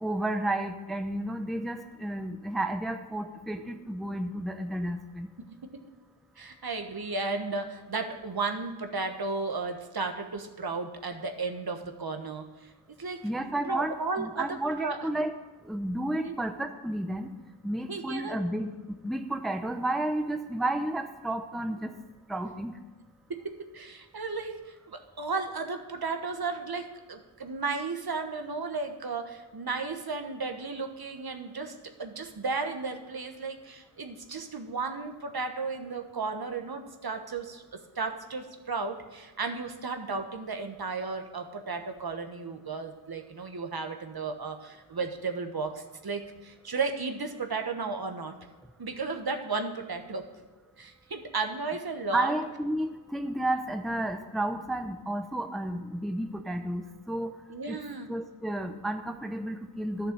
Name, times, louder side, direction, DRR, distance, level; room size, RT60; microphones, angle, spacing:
voice 1, 0.0-5.3 13.2-15.3 15.6-17.3 17.6-18.7 19.0-21.9 22.3-22.7 52.1-57.3 57.7-57.8 58.1-60.1, right 1 dB, ahead, 6 dB, 0.7 m, -32 dB
voice 2, 5.4-5.8 6.4-13.3 13.6-15.1 16.2-16.3 17.9-18.5 23.3-48.3 48.8-50.3 50.8-52.3 57.5-58.1, right 4 dB, 50° right, 5 dB, 1.2 m, -34 dB
11.5 x 6.6 x 6.7 m, 1.3 s
wide cardioid pair, 65°, 48 cm